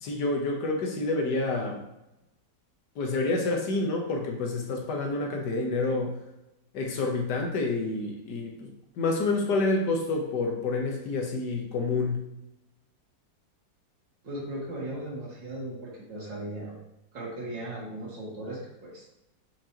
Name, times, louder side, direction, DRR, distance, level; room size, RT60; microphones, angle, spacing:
voice 1, 0.0-1.8 2.9-6.2 6.7-8.7 9.0-12.3, left 3 dB, 70° left, 1 dB, 1.7 m, -28 dB
voice 2, 14.2-16.8 17.1-19.0, right 1 dB, 90° right, -6 dB, 2.4 m, -37 dB
7.5 x 4.7 x 3.0 m, 0.91 s
omnidirectional pair, 2.0 m